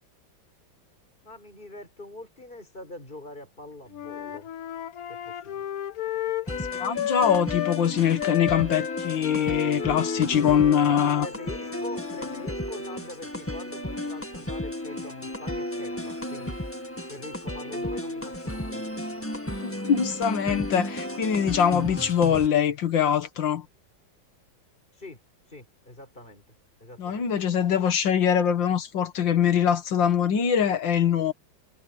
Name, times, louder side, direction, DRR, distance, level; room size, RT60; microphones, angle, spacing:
voice 1, 1.2-4.5 5.1-5.7 10.8-16.6 17.1-18.9 24.9-25.2 25.5-26.6 26.8-27.3, left 2 dB, 25° left, 6.0 m, -43 dB
Wind instrument woodwind instrument, 3.9-7.8 8.2-12.5, left 11 dB, 60° left, 1.2 m, -32 dB
sound 1, 6.5-22.5, left 1 dB, 5° left, 1.7 m, -34 dB
voice 2, 6.8-11.3 19.6-23.7 27.0-31.3, left 8 dB, 85° left, 2.1 m, -23 dB
omnidirectional pair, 2.0 m